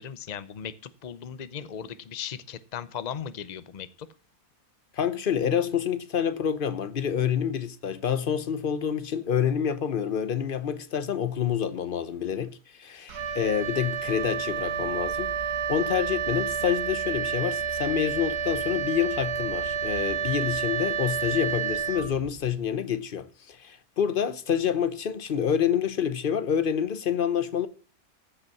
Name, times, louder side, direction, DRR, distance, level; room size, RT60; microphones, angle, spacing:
voice 1, 0.0-4.1, left 8 dB, 70° left, 0.4 m, -37 dB
voice 2, 4.9-15.3 15.7-27.7, left 8 dB, 45° left, 0.7 m, -27 dB
Wind instrument woodwind instrument, 13.1-22.6, right 7 dB, 90° right, 1.5 m, -30 dB
14.5 x 5.5 x 7.0 m
omnidirectional pair, 1.6 m